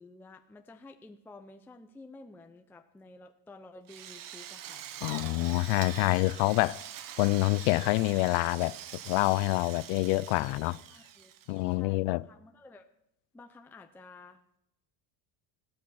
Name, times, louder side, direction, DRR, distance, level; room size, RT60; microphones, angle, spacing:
voice 1, 0.0-4.8 10.1-11.3 11.7-12.9 13.3-14.6, left 2 dB, 5° left, 0.5 m, -52 dB
Drill, 3.9-11.7, right 10 dB, 45° right, 1.0 m, -44 dB
voice 2, 5.0-6.8 7.2-8.8 9.0-10.8 11.5-12.2, left 22 dB, 75° left, 0.6 m, -27 dB
15.5 x 12.5 x 6.3 m
cardioid pair, 150°, 46 cm